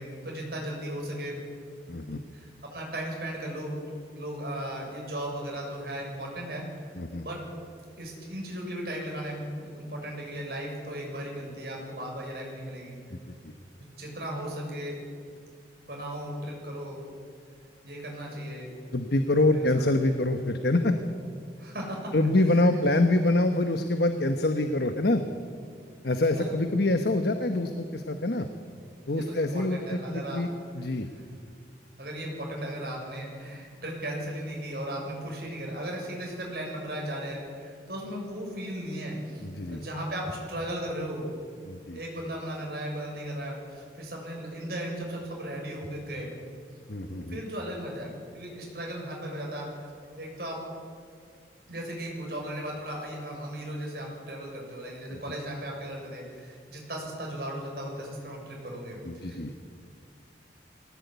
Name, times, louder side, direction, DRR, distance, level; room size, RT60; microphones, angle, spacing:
voice 1, 0.0-1.4 2.3-3.8 4.1-6.6 7.2-7.4 8.0-13.0 14.0-15.0 15.9-17.0 17.8-18.7 19.5-19.8 21.6-22.1 22.7-22.8 26.3-26.5 29.1-30.4 32.0-41.3 41.9-46.3 47.1-49.9 50.2-50.6 51.7-59.6, right 1 dB, 55° right, -1 dB, 6.9 m, -36 dB
voice 2, 1.9-2.2 7.0-7.2 13.1-13.5 18.9-21.0 22.1-25.2 26.0-28.5 29.1-30.5 30.7-31.1 39.4-39.8 41.6-42.0 46.9-47.4 55.1-55.2 59.0-59.5, left 2 dB, 60° left, 7 dB, 1.2 m, -25 dB
21.0 x 18.0 x 9.5 m, 2.2 s
head